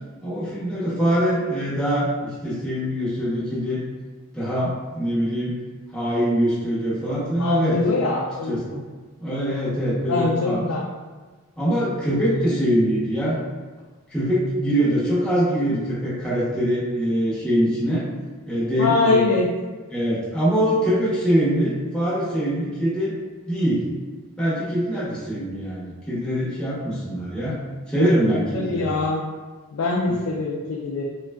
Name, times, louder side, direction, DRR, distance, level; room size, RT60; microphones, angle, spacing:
voice 1, 0.2-3.8 4.3-5.5 5.9-7.8 8.5-8.6 9.2-10.6 11.6-13.4 14.1-18.1 18.5-19.2 19.9-23.1 23.5-23.9 24.4-27.6 27.9-28.9 30.1-30.2, equal, 5° left, -11 dB, 0.8 m, -23 dB
voice 2, 7.4-8.8 10.1-10.9 18.8-19.5 28.5-29.2 29.7-31.0, left 3 dB, 70° left, -2 dB, 0.4 m, -23 dB
3.7 x 2.2 x 2.2 m, 1.3 s
head